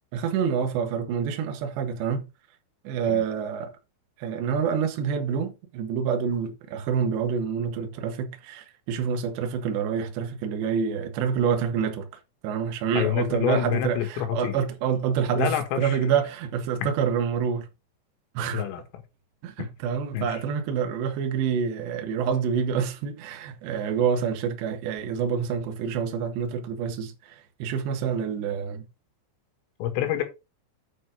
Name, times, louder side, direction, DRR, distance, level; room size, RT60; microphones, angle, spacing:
voice 1, 0.1-2.3 2.8-3.7 4.2-12.1 12.4-17.7 18.3-18.6 19.4-28.9, right 7 dB, 65° right, 3.3 m, -27 dB
voice 2, 13.0-14.6 15.4-16.0 18.5-18.8 20.1-20.4 29.8-30.2, left 10 dB, 80° left, 4.3 m, -27 dB
9.2 x 5.1 x 4.9 m
omnidirectional pair, 5.9 m